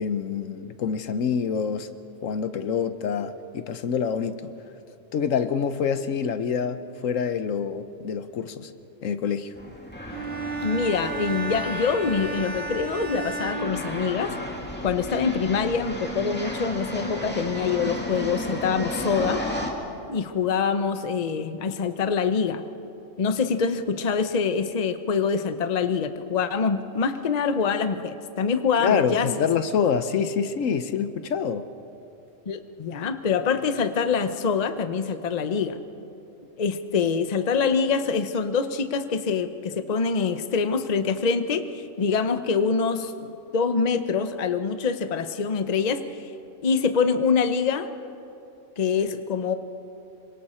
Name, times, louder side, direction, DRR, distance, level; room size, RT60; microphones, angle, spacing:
voice 1, 0.0-1.9 2.2-4.5 5.1-8.7 9.0-9.5 28.8-31.6, left 6 dB, 80° left, 11 dB, 1.2 m, -26 dB
sound 1, 9.5-19.7, equal, 10° left, 2.0 m, -34 dB
Bowed string instrument, 10.1-14.6, right 3 dB, 85° right, 2.3 m, -33 dB
voice 2, 10.6-14.3 14.8-19.4 20.1-22.6 23.2-29.3 32.5-35.8 36.6-46.0 46.6-47.9 48.8-49.5, left 5 dB, 35° left, 9 dB, 0.8 m, -25 dB
26.5 x 24.5 x 4.4 m, 2.8 s
omnidirectional pair, 1.3 m